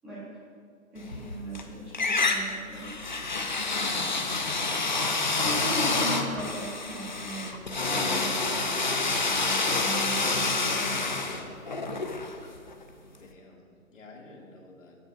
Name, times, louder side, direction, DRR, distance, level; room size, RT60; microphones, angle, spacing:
voice 1, 0.9-3.0 5.4-8.7 9.6-11.2, right 1 dB, ahead, -11 dB, 0.7 m, -38 dB
sound 1, 1.0-1.6 1.9-12.8, left 3 dB, 35° left, 0.5 m, -28 dB
voice 2, 3.5-5.2 13.1-15.0, left 2 dB, 65° left, -2 dB, 2.2 m, -49 dB
14.5 x 9.0 x 2.5 m, 2.2 s
hypercardioid pair, 165°, 42 cm